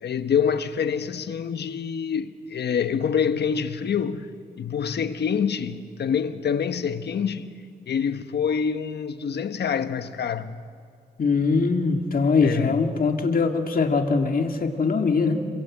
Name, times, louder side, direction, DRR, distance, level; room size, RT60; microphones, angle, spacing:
voice 1, 0.0-4.3 4.6-7.5 7.9-10.6 12.4-12.9, left 7 dB, 80° left, 1.2 m, -26 dB
voice 2, 11.2-15.4, left 4 dB, 55° left, 2.1 m, -22 dB
27.0 x 23.0 x 8.6 m
cardioid pair, 75°, 17 cm